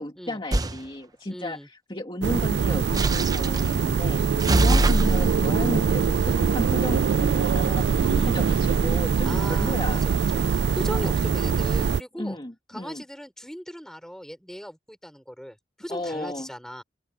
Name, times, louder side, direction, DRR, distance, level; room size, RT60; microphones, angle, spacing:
voice 1, 0.0-4.2 4.6-10.0 10.9-11.1 12.2-13.0 15.9-16.5, left 1 dB, 30° left, 2.5 m, -33 dB
sound 1, 0.5-0.8 2.9-3.7 4.4-7.0, right 1 dB, 20° right, 0.7 m, -25 dB
voice 2, 1.3-1.7 8.1-8.4 9.2-12.4 12.7-16.8, equal, 5° left, 5.2 m, -38 dB
sound 2, 2.2-12.0, right 6 dB, 70° right, 0.3 m, -23 dB
open air
head